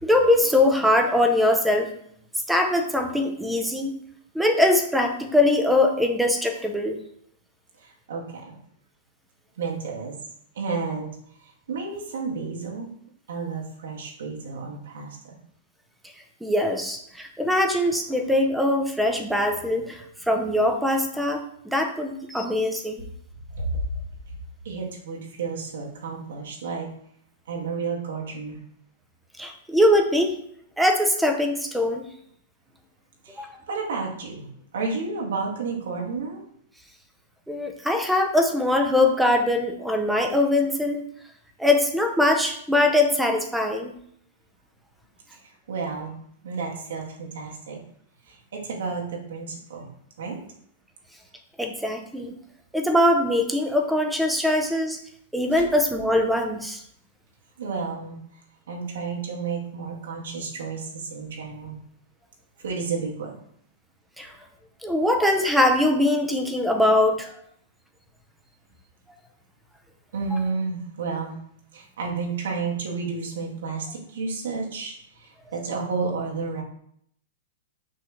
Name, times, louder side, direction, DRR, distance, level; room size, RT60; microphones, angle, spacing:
voice 1, 0.0-1.9 2.5-3.9 4.3-7.0 16.4-23.1 29.4-30.4 30.8-32.0 33.4-33.5 37.5-41.0 41.6-43.9 51.6-52.3 52.7-55.0 55.3-56.8 64.2-64.3 64.8-67.4, left 1 dB, ahead, 4 dB, 0.7 m, -22 dB
voice 2, 7.8-8.6 9.6-10.1 10.5-11.1 11.4-12.9 13.3-15.4 23.6-23.8 24.6-26.9 27.5-28.6 33.2-34.5 34.7-36.4 45.3-45.4 45.7-46.2 46.4-47.8 48.3-49.8 50.2-50.4 57.6-58.2 58.7-61.8 62.6-63.4 70.1-71.4 71.7-76.6, right 4 dB, 85° right, -2 dB, 2.1 m, -31 dB
6.1 x 3.3 x 5.7 m, 0.68 s
supercardioid pair, 160°, 0 cm